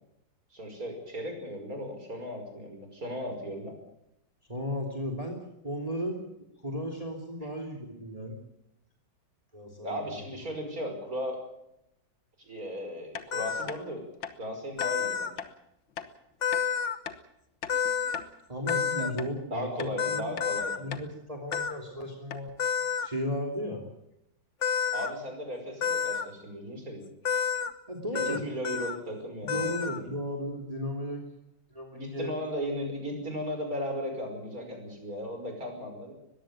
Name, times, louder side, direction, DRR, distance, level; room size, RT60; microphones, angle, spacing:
voice 1, 0.5-3.7 9.8-11.4 12.4-14.0 14.4-15.4 19.0-19.2 19.5-20.8 24.9-27.1 28.2-29.6 29.9-30.1 31.9-36.1, equal, 45° right, 4 dB, 5.8 m, -36 dB
voice 2, 4.5-5.4 5.6-6.2 6.6-8.3 9.5-10.1 18.5-20.4 20.8-22.5 23.0-23.8 27.9-28.4 29.4-31.2 31.7-32.3 32.8-32.9, equal, 20° right, 3 dB, 3.1 m, -35 dB
sound 1, 13.1-13.3 13.7-13.8 14.2-14.4 14.8-14.9 15.4-15.5 16.0-16.1 16.5-16.7 17.1-17.2 17.6-18.3 18.7-18.8 19.2-19.3 19.8-20.0 20.4-20.5 20.9-21.1 21.5-21.7 22.0-22.1 22.3-22.5, left 8 dB, 85° left, 2.1 m, -39 dB
sound 2, 13.3-13.7 14.8-15.3 16.4-17.0 17.7-18.2 18.7-19.1 20.0-20.8 21.5-21.7 22.6-23.1 24.6-25.1 25.8-26.2 27.2-27.7 28.1-28.4 28.6-29.0 29.5-30.0, left 7 dB, 40° left, 1.4 m, -29 dB
21.5 x 15.5 x 9.0 m, 0.83 s
omnidirectional pair, 2.1 m